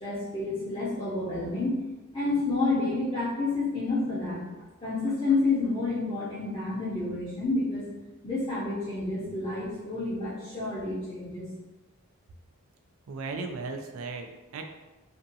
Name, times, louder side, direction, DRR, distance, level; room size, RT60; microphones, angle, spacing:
voice 1, 0.0-1.8 2.1-4.5 4.8-7.8 8.2-11.5, left 3 dB, 25° left, -10 dB, 0.5 m, -29 dB
voice 2, 13.1-14.6, right 4 dB, 65° right, 5 dB, 0.3 m, -36 dB
2.5 x 2.3 x 2.6 m, 1.1 s
head